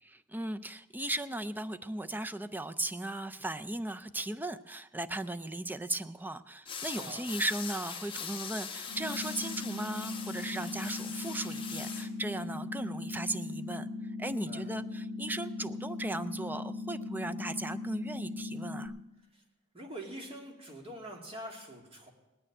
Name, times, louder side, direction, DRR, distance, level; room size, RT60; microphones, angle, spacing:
voice 1, 0.0-13.9 14.2-18.9, right 1 dB, 10° right, 10 dB, 0.4 m, -37 dB
sound 1, 6.7-12.1, left 6 dB, 25° left, 1.1 m, -41 dB
voice 2, 7.0-7.3 14.2-14.7 19.7-22.1, right 1 dB, 25° right, 0 dB, 2.6 m, -45 dB
sound 2, 8.9-18.9, left 3 dB, 60° right, 7.2 m, -39 dB
19.0 x 6.7 x 10.0 m, 1.1 s
head